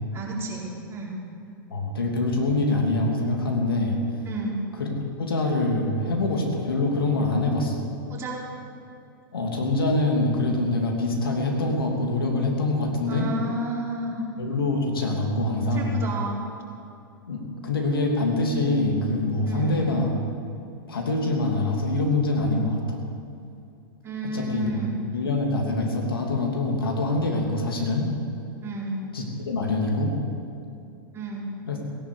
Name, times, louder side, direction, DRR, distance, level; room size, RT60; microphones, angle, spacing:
voice 1, 0.1-1.1 4.2-4.6 8.1-8.4 13.1-14.3 15.7-16.4 19.4-19.9 24.0-24.9 28.6-29.0 31.1-31.5, right 2 dB, 20° right, -4 dB, 4.3 m, -32 dB
voice 2, 1.7-4.0 4.8-4.9 5.2-7.9 9.3-13.3 14.4-16.0 17.3-20.1 20.9-23.0 24.2-24.7 25.1-28.1 29.1-30.2 31.7-31.8, left 2 dB, 80° left, 1 dB, 2.9 m, -25 dB
17.5 x 11.0 x 6.8 m, 2.6 s
hypercardioid pair, 105°, 12 cm